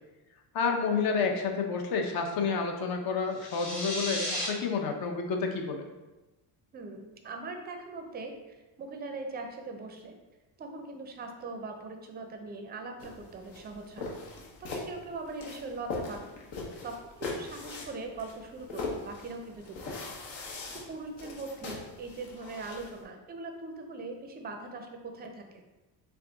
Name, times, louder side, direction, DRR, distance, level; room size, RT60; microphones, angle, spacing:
voice 1, 0.5-5.9, left 5 dB, 55° left, 3 dB, 0.7 m, -29 dB
sound 1, 3.3-4.5, left 1 dB, 35° left, 1.2 m, -34 dB
voice 2, 6.7-10.2 10.6-14.1 14.6-16.3 16.8-20.1 20.7-25.6, right 3 dB, 25° right, 4 dB, 0.4 m, -41 dB
sound 2, 13.0-23.0, left 3 dB, 75° left, 1.1 m, -41 dB
3.5 x 3.4 x 3.8 m, 1.1 s
cardioid pair, 155°, 44 cm